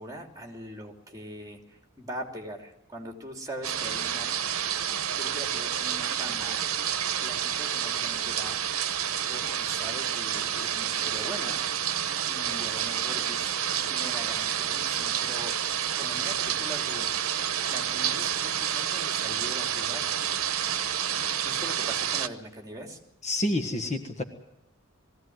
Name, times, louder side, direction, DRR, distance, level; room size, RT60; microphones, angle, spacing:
voice 1, 0.0-4.3 5.2-6.6 7.2-8.6 9.3-11.6 12.2-15.6 15.9-17.1 17.7-20.1 21.4-23.0, right 1 dB, 15° right, 2 dB, 3.0 m, -41 dB
sound 1, 3.6-22.3, right 9 dB, 75° right, 0.9 m, -29 dB
voice 2, 23.2-24.2, left 1 dB, 35° left, 5 dB, 1.5 m, -28 dB
21.0 x 16.0 x 9.5 m, 0.88 s
head